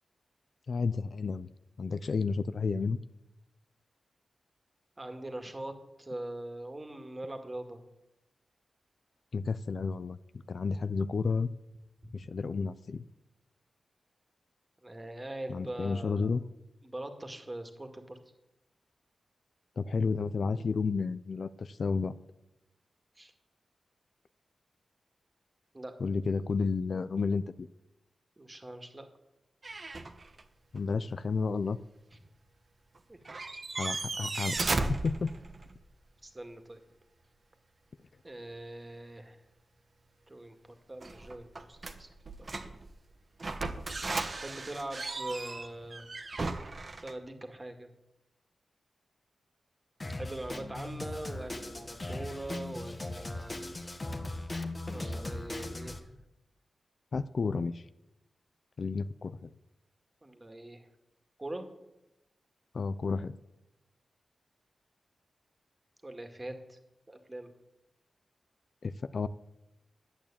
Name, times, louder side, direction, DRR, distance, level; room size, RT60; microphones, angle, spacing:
voice 1, 0.7-1.5 1.8-3.0 9.3-10.2 10.5-11.5 12.1-13.0 15.5-16.4 19.8-22.2 26.0-27.7 30.7-31.8 33.8-35.4 57.1-57.8 58.8-59.5 62.7-63.4 68.8-69.3, left 4 dB, 60° left, 14 dB, 0.5 m, -31 dB
voice 2, 5.0-7.8 14.8-16.3 16.8-18.2 23.2-23.3 25.7-25.9 28.4-29.1 33.1-33.2 33.5-33.6 36.2-36.8 38.2-39.4 40.3-40.6 40.9-42.1 42.4-42.5 44.4-46.1 47.0-47.9 50.2-53.6 54.9-56.1 60.2-60.9 61.4-61.7 66.0-66.8 67.1-67.5, right 1 dB, 20° right, 5 dB, 2.1 m, -42 dB
sound 1, 29.6-30.4 30.8-30.9 33.0-33.1 33.2-35.8 41.0-42.9 43.4-47.1, right 3 dB, 45° right, 1.3 m, -36 dB
Drum kit, 50.0-56.0, left 2 dB, 30° left, 1.6 m, -39 dB
11.5 x 8.8 x 8.6 m, 0.92 s
wide cardioid pair, 90°, 0 cm